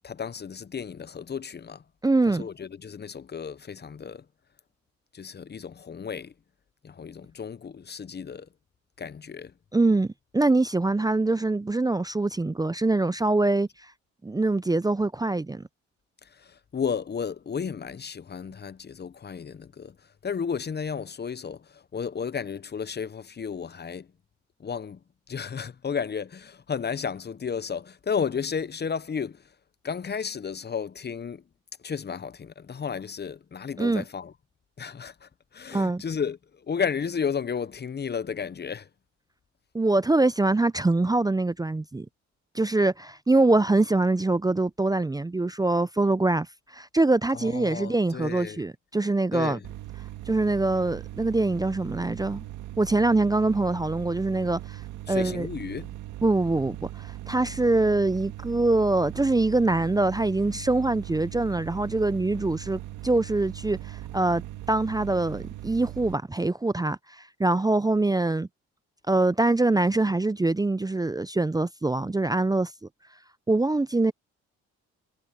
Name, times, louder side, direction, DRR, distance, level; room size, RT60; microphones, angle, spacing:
voice 1, 0.0-1.8 2.3-4.2 5.1-6.3 6.8-8.5 9.0-9.5 16.4-19.9 20.2-24.1 24.6-25.0 25.3-29.4 29.8-31.4 31.8-34.3 34.8-36.4 36.7-38.9 47.3-48.6 49.3-49.6 55.1-55.9, left 6 dB, 35° left, 0.8 m, -33 dB
voice 2, 2.0-2.5 9.7-13.7 14.2-15.7 33.8-34.0 35.7-36.0 39.7-42.1 42.5-46.5 46.7-49.6 50.3-52.4 52.8-54.8 55.1-55.5 56.2-64.4 64.7-68.5 69.1-72.7 73.5-74.1, right 2 dB, 10° right, 0.6 m, -24 dB
sound 1, 49.6-66.2, right 14 dB, 80° right, 1.8 m, -39 dB
supercardioid pair, 65°, 30 cm